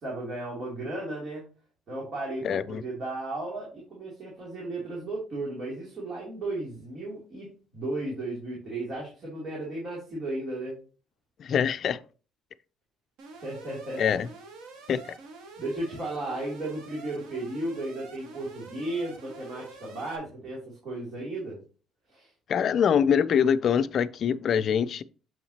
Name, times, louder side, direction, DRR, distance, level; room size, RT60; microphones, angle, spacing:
voice 1, 0.0-1.4 1.9-7.5 7.7-10.8 13.4-14.2 15.6-21.6 22.1-22.3, right 2 dB, 45° right, 2.8 m, -35 dB
voice 2, 2.4-2.8 11.4-12.0 14.0-14.3 14.9-15.2 22.5-25.0, left 8 dB, 50° left, 0.4 m, -24 dB
Alarm, 13.2-20.2, right 3 dB, 85° right, 1.5 m, -47 dB
7.3 x 5.8 x 2.8 m
cardioid pair, 125°, 0 cm